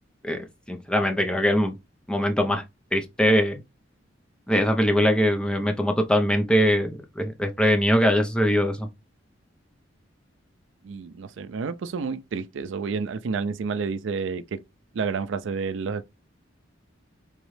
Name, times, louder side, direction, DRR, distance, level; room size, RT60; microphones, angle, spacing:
voice 1, 0.7-1.7 2.1-2.6 2.9-3.6 4.5-8.9, equal, 5° left, 0.6 m, -22 dB
voice 2, 10.8-14.6 14.9-16.0, right 5 dB, 70° right, 0.4 m, -30 dB
3.6 x 3.0 x 3.1 m
head